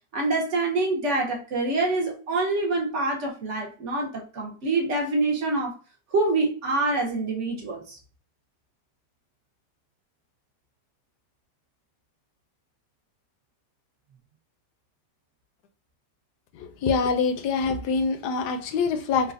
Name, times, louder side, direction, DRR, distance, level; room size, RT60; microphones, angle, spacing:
voice 1, 0.1-5.7 6.1-8.0, right 2 dB, 50° right, 1.0 m, -26 dB
voice 2, 16.5-19.3, left 5 dB, 75° left, 1.1 m, -25 dB
3.9 x 2.3 x 2.5 m
omnidirectional pair, 1.8 m